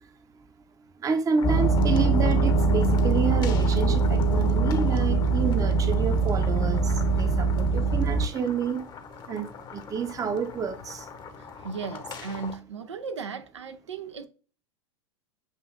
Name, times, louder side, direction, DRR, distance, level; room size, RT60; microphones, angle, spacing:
voice 1, 1.0-6.9 7.2-8.8 9.3-11.0, right 6 dB, 25° right, 0.7 m, -29 dB
sound 1, 1.4-8.3, right 3 dB, 60° left, 1.4 m, -22 dB
sound 2, 1.4-12.6, left 6 dB, 30° left, 0.8 m, -42 dB
voice 2, 11.4-14.3, right 5 dB, 90° right, 0.6 m, -36 dB
7.2 x 2.6 x 2.4 m
hypercardioid pair, 100°, 14 cm